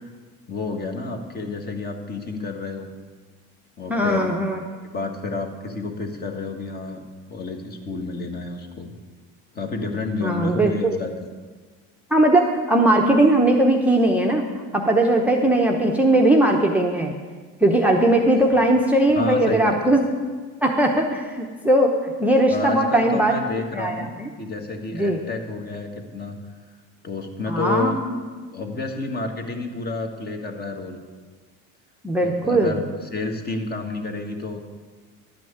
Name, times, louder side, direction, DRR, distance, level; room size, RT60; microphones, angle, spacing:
voice 1, 0.5-2.9 3.8-4.3 4.9-7.0 7.3-8.9 9.5-11.1 18.5-18.6 19.1-19.7 22.5-26.4 27.0-28.0 28.5-31.0 32.2-32.8 33.1-34.6, left 3 dB, 30° left, 4 dB, 1.5 m, -30 dB
voice 2, 3.9-4.6 10.2-10.9 12.1-14.5 14.7-17.1 17.6-20.0 20.6-23.3 23.7-24.3 24.9-25.2 27.5-28.2 32.0-32.8, right 1 dB, 5° right, 0 dB, 0.8 m, -19 dB
11.5 x 6.1 x 8.7 m, 1.4 s
cardioid pair, 130°, 32 cm